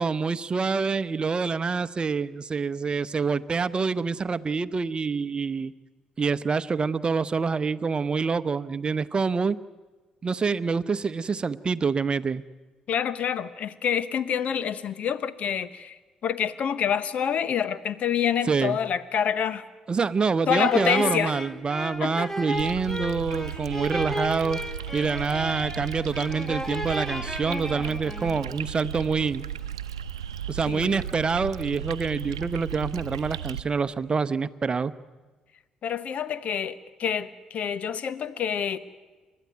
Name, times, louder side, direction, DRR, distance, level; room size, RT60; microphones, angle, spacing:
voice 1, 0.0-5.7 6.2-9.6 10.2-12.4 18.5-18.8 19.9-24.6 24.9-29.4 30.5-34.9, right 5 dB, 35° right, 0.8 m, -26 dB
voice 2, 12.9-19.6 20.5-21.4 22.0-22.3 30.7-31.0 35.8-38.8, left 8 dB, 55° left, 1.1 m, -27 dB
sound 1, 20.5-28.6, equal, 10° left, 1.8 m, -34 dB
sound 2, 22.5-33.6, right 9 dB, 90° right, 0.7 m, -35 dB
29.5 x 13.0 x 9.4 m
hypercardioid pair, 50°, 3 cm